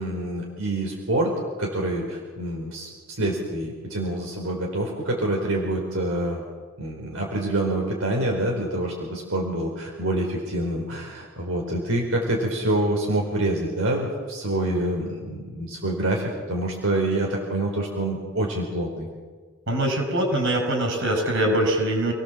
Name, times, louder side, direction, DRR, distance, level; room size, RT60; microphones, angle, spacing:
voice 1, 0.0-2.9 3.2-6.4 6.8-19.1, right 1 dB, 85° right, 0 dB, 4.6 m, -26 dB
voice 2, 19.7-22.1, right 1 dB, 65° right, 3 dB, 7.0 m, -23 dB
29.5 x 19.0 x 7.5 m, 1.5 s
head